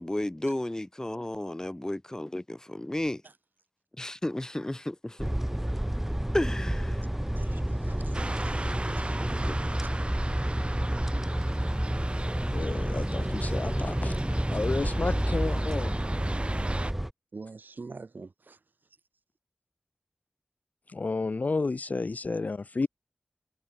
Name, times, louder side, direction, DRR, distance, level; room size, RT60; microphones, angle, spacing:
voice 1, 0.0-3.2 4.0-5.3 6.3-7.1 9.2-9.4 10.8-11.0 14.0-14.2 16.5-16.6, left 1 dB, 20° left, 5.3 m, -33 dB
sound 1, 5.2-17.1, right 1 dB, 10° right, 1.1 m, -29 dB
voice 2, 7.3-9.5 9.8-9.9 15.5-15.6 17.3-18.6, right 4 dB, 75° right, 5.4 m, -46 dB
sound 2, 8.1-16.9, right 2 dB, 35° right, 1.6 m, -38 dB
voice 3, 12.5-14.2 14.5-16.0 20.9-22.9, left 3 dB, 55° left, 0.6 m, -31 dB
wide cardioid pair, 70°, 3 cm